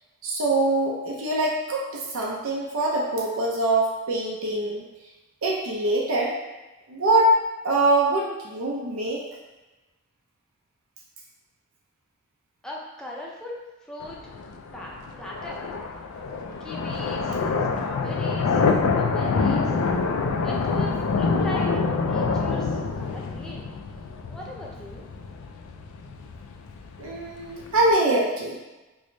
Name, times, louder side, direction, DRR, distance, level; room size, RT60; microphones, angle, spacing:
voice 1, 0.2-4.8 5.4-6.4 6.9-7.4 7.6-9.2 27.0-28.6, right 2 dB, 75° right, -3 dB, 0.5 m, -23 dB
voice 2, 12.6-14.2 14.7-15.6 16.6-19.8 20.4-21.7 22.0-23.7 24.3-25.1, left 1 dB, 5° left, -4 dB, 0.4 m, -39 dB
sound 1, 14.0-27.9, left 4 dB, 85° left, 0.3 m, -26 dB
4.7 x 2.0 x 2.6 m, 1.1 s
head